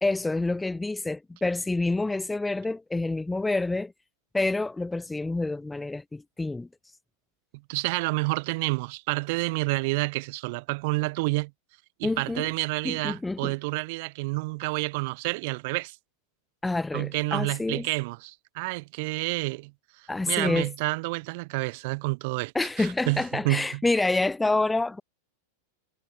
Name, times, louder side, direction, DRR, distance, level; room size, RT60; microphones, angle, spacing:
voice 1, 0.0-3.9 4.3-6.7 12.0-12.5 12.8-13.5 16.6-17.9 20.1-20.7 22.5-25.0, left 2 dB, 10° left, 1.8 m, -27 dB
voice 2, 7.7-11.5 12.0-16.0 16.9-19.7 20.3-22.5 22.8-23.8, right 26 dB, 50° right, 3.0 m, -29 dB
figure-of-eight pair, 90°, 0 cm